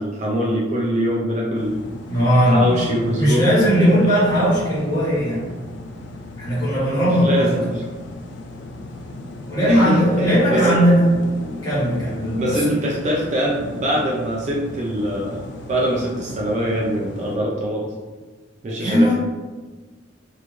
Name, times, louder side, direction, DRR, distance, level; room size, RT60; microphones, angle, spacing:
voice 1, 0.0-1.9 2.5-4.1 7.2-7.8 9.6-10.8 12.4-17.9 18.6-19.1, equal, 35° right, -3 dB, 0.3 m, -23 dB
sound 1, 1.5-17.4, left 2 dB, 60° left, 0.4 m, -36 dB
voice 2, 2.1-2.8 3.2-5.5 6.4-7.6 9.5-11.3 11.6-12.8 18.8-19.1, equal, 20° left, -10 dB, 1.2 m, -18 dB
3.0 x 2.4 x 2.4 m, 1.3 s
head